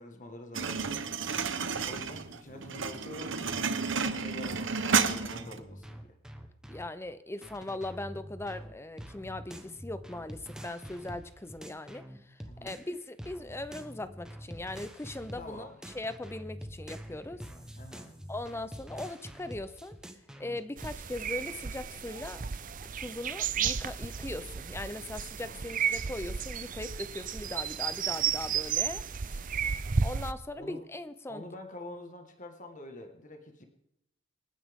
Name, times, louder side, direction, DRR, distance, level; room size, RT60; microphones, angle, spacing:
voice 1, 0.0-1.5 1.8-6.0 12.5-12.7 15.3-15.7 17.8-18.1 25.4-25.7 30.5-30.8 31.3-33.6, left 1 dB, 40° left, 4 dB, 1.7 m, -46 dB
sound 1, 0.5-5.6, right 5 dB, 65° right, 1.0 m, -31 dB
sound 2, 3.5-3.8 4.8-6.9 7.4-12.9 13.2-15.5 15.8-21.0, equal, 5° right, 1.2 m, -46 dB
voice 2, 6.7-15.7 15.9-17.4 18.3-20.0 20.4-22.4 22.9-29.0 30.0-31.4, left 2 dB, 15° left, 12 dB, 0.6 m, -39 dB
sound 3, 20.8-30.3, right 7 dB, 40° right, 0.6 m, -33 dB
27.0 x 9.8 x 3.7 m, 0.79 s
head